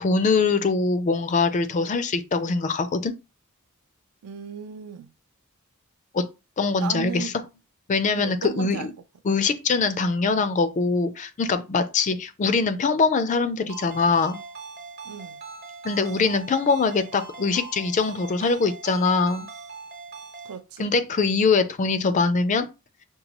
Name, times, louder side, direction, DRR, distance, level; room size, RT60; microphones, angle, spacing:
voice 1, 0.0-3.1 6.1-6.3 6.6-7.3 7.9-8.9 9.3-14.4 15.8-19.5 20.8-22.7, left 4 dB, 35° left, 0.4 m, -23 dB
voice 2, 4.2-5.1 6.8-7.4 8.2-8.9 15.0-15.4 20.4-20.9, right 8 dB, 70° right, 0.4 m, -35 dB
Ringtone, 13.7-20.6, right 4 dB, 45° right, 0.9 m, -41 dB
5.3 x 2.2 x 2.9 m
head